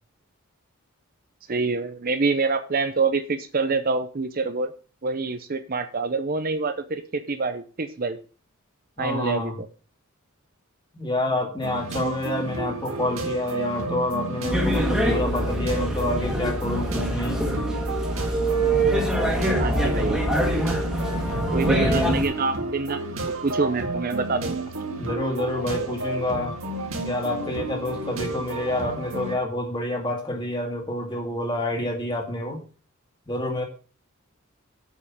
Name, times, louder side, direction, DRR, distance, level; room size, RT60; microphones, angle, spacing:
voice 1, 1.5-4.7 5.0-8.2 9.0-9.7 19.4-20.2 21.5-24.6, right 4 dB, 40° right, 9 dB, 0.7 m, -26 dB
voice 2, 9.0-9.5 10.9-17.4 21.8-22.2 25.0-26.6 27.0-32.6 33.3-33.6, left 1 dB, 20° left, 2 dB, 2.1 m, -28 dB
sound 1, 11.6-29.3, right 2 dB, 60° right, 2.1 m, -32 dB
sound 2, 14.5-22.2, right 1 dB, ahead, 1.8 m, -24 dB
8.2 x 5.4 x 7.2 m, 0.38 s
head